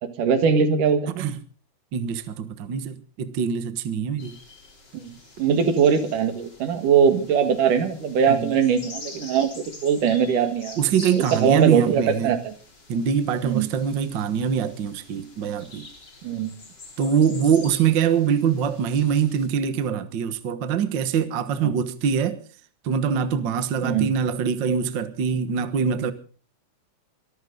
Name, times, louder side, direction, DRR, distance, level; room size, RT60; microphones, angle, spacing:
voice 1, 0.0-1.2 4.9-10.8 11.3-12.5 13.4-13.7 16.2-16.5 21.6-21.8 23.8-24.1, right 7 dB, 80° right, 3.5 m, -21 dB
voice 2, 1.9-4.4 8.3-8.5 10.8-12.3 12.9-15.9 17.0-22.4 22.8-26.1, right 7 dB, 50° right, 1.5 m, -23 dB
sound 1, 4.2-19.5, left 3 dB, 35° left, 4.1 m, -46 dB
24.0 x 14.0 x 3.9 m
omnidirectional pair, 3.7 m